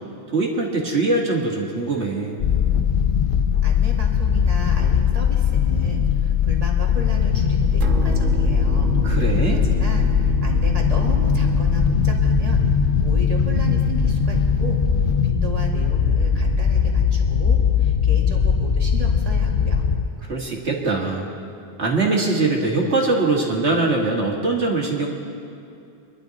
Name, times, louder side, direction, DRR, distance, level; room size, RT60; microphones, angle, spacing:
voice 1, 0.3-2.4 9.0-9.6 20.2-21.3 21.8-25.1, right 3 dB, 55° right, -1 dB, 2.0 m, -22 dB
sound 1, 2.4-20.0, left 7 dB, 55° left, 0.6 m, -20 dB
voice 2, 3.6-14.8 15.2-19.8, equal, 30° right, -1 dB, 1.9 m, -34 dB
sound 2, 7.8-18.8, right 3 dB, 75° right, 1.4 m, -29 dB
24.5 x 11.0 x 4.0 m, 2.6 s
omnidirectional pair, 1.4 m